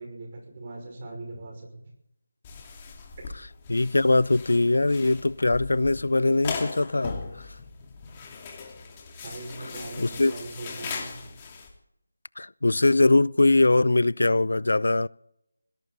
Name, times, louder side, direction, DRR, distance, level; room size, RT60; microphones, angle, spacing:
voice 1, 0.0-1.8 9.2-11.1, right 2 dB, 30° right, 5.5 m, -40 dB
sound 1, 2.4-11.7, left 5 dB, 20° left, 2.7 m, -39 dB
voice 2, 3.7-7.2 10.0-10.3 12.4-15.1, left 2 dB, 75° left, 0.5 m, -21 dB
20.5 x 17.0 x 4.1 m
figure-of-eight pair, 170°, 0 cm